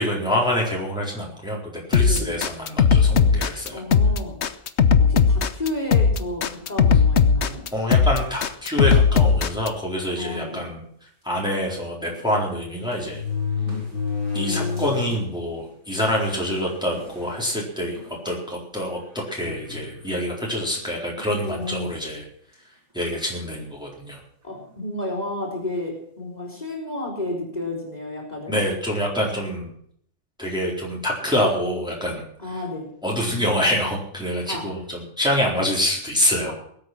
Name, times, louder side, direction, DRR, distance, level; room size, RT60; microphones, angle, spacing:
voice 1, 0.0-1.6 1.9-3.8 7.7-10.8 11.2-13.2 14.3-18.0 18.2-22.2 22.9-24.2 28.5-29.7 30.4-32.2 33.0-36.5, equal, 5° right, -3 dB, 4.1 m, -26 dB
sound 1, 1.9-9.7, left 6 dB, 55° left, 1.1 m, -17 dB
voice 2, 2.1-2.4 3.7-4.4 5.0-7.6 10.2-10.6 14.3-15.2 21.4-22.0 24.4-28.6 32.4-32.9 34.5-34.7 36.5-36.6, left 1 dB, 30° left, 0 dB, 4.1 m, -31 dB
sound 2, 9.3-9.5 10.3-10.4 10.7-10.8 12.1-12.2 12.9-15.1 15.6-15.7 16.5-16.6 17.0-17.3 18.0-18.1 19.4-20.2 21.2-21.4, left 5 dB, 70° right, 5.7 m, -30 dB
20.5 x 8.8 x 6.0 m, 0.65 s
omnidirectional pair, 1.5 m